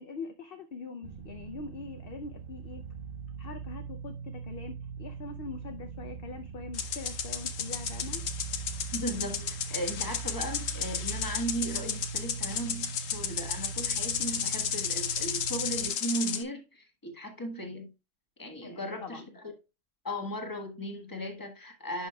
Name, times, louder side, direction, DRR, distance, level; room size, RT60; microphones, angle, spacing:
voice 1, 0.0-2.8 3.4-8.2 18.6-19.3, left 4 dB, 55° left, 0.7 m, -43 dB
sound 1, 1.0-15.9, right 6 dB, 55° right, 0.6 m, -41 dB
sound 2, 6.7-16.4, left 8 dB, 70° left, 1.1 m, -33 dB
voice 2, 8.9-17.9 18.4-19.5 20.0-22.1, right 1 dB, 15° left, 1.3 m, -37 dB
11.0 x 5.5 x 2.3 m
omnidirectional pair, 1.5 m